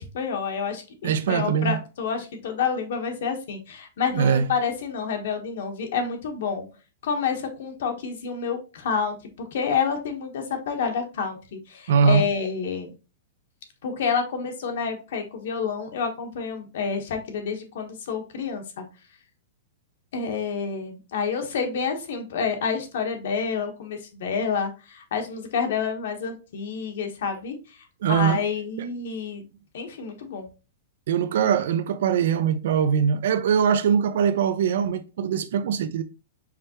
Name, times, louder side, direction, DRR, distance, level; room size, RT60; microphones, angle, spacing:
voice 1, 0.0-6.7 7.0-9.2 9.5-12.9 13.8-18.8 20.1-27.5 28.1-29.4 29.7-30.5, left 6 dB, 60° left, 1.2 m, -28 dB
voice 2, 1.0-1.8 4.1-4.5 11.9-12.3 28.0-28.4 31.1-36.0, right 7 dB, 60° right, 0.5 m, -22 dB
4.9 x 3.3 x 2.9 m
supercardioid pair, 175°, 0 cm